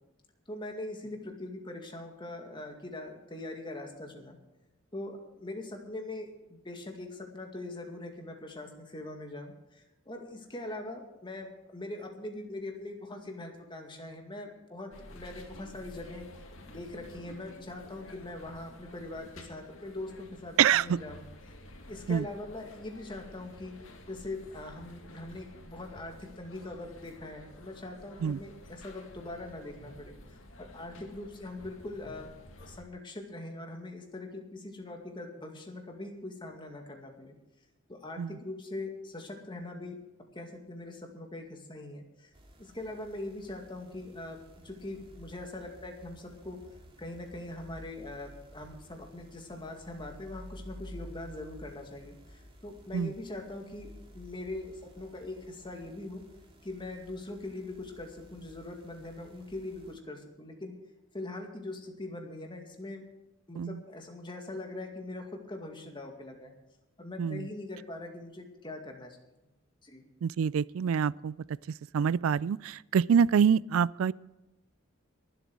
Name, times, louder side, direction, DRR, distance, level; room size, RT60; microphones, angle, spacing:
voice 1, 0.5-4.4 4.9-16.3 16.7-21.5 21.9-23.7 24.1-30.1 30.6-32.3 32.6-37.3 37.9-40.0 40.3-42.3 42.6-44.4 44.6-46.6 47.0-56.2 56.6-60.7 61.1-63.0 63.5-66.5 67.0-69.2 69.8-70.0, left 2 dB, 25° left, 3 dB, 2.1 m, -42 dB
sound 1, 14.9-32.8, left 1 dB, 80° left, 2.4 m, -51 dB
voice 2, 20.6-21.0 22.1-22.3 28.2-28.4 38.2-38.3 52.9-53.1 63.6-63.8 67.2-67.5 70.2-71.4 71.9-74.1, right 7 dB, 80° right, 22 dB, 0.3 m, -26 dB
sound 2, 42.3-59.9, equal, 25° right, 2.5 m, -52 dB
23.0 x 8.1 x 4.7 m, 1.0 s
head